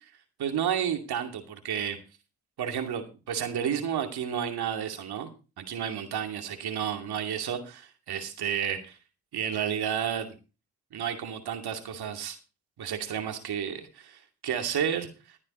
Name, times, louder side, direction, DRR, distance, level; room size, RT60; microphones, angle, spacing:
voice 1, 0.4-2.0 2.6-5.3 5.6-9.0 9.3-10.3 10.9-12.4 12.8-15.4, right 8 dB, 85° right, 5 dB, 2.6 m, -31 dB
12.5 x 10.0 x 4.3 m, 0.32 s
cardioid pair, 55°, 38 cm